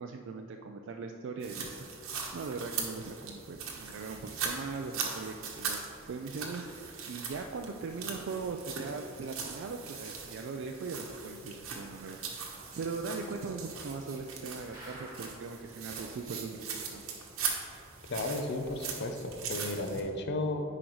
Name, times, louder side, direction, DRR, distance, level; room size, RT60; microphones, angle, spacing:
voice 1, 0.0-1.7 2.3-5.8 6.1-6.7 7.1-12.2 12.8-17.0, right 4 dB, 60° right, 4 dB, 0.3 m, -40 dB
sound 1, 1.4-20.0, right 5 dB, 85° right, 1.1 m, -40 dB
sound 2, 14.7-15.6 16.0-16.1 16.3-16.4 16.9-17.0, right 1 dB, 20° right, 1.5 m, -48 dB
voice 2, 18.1-20.6, left 2 dB, 55° left, 5 dB, 0.6 m, -34 dB
10.0 x 4.9 x 3.1 m, 2.9 s
head